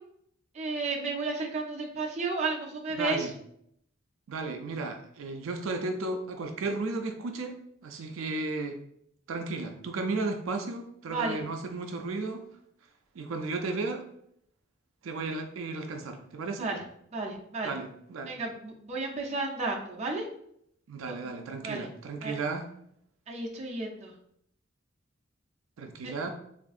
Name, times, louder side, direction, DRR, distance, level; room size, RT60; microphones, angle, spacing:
voice 1, 0.5-3.3 11.1-11.4 16.6-16.8 17.1-17.7 18.3-20.3 21.0-21.1 21.6-21.9 22.2-22.3 23.3-24.1 26.0-26.1, right 3 dB, 35° right, -1 dB, 0.5 m, -32 dB
voice 2, 2.9-3.3 4.3-8.8 9.3-12.5 13.1-14.0 15.0-16.7 17.6-18.3 20.9-22.7 25.8-26.3, right 3 dB, 90° right, 5 dB, 0.4 m, -34 dB
3.5 x 2.5 x 2.4 m, 0.71 s
head